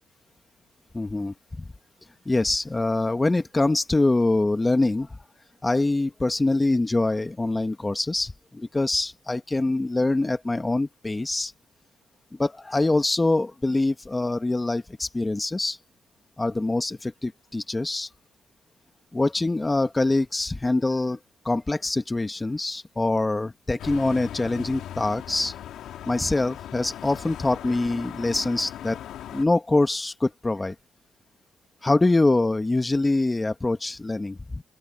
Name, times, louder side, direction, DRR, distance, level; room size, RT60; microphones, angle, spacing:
voice 1, 0.9-1.7 2.2-5.2 5.6-11.5 12.4-15.8 16.4-18.1 19.1-21.2 21.4-25.5 26.1-29.0 29.3-30.7 31.8-34.6, left 2 dB, 15° left, 1.5 m, -24 dB
sound 1, 23.8-29.5, left 11 dB, 80° left, 3.1 m, -39 dB
open air
cardioid pair, 90°, 0 cm